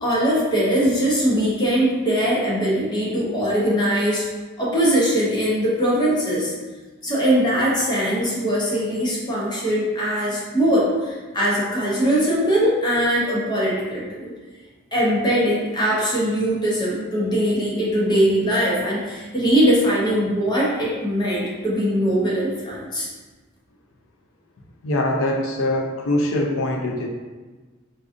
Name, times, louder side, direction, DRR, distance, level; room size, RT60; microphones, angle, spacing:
voice 1, 0.0-4.3 4.6-6.5 7.0-14.3 14.9-23.1, equal, 20° left, -5 dB, 0.6 m, -21 dB
voice 2, 24.8-27.1, left 1 dB, 80° left, 0 dB, 0.5 m, -23 dB
3.8 x 2.4 x 2.5 m, 1.3 s
head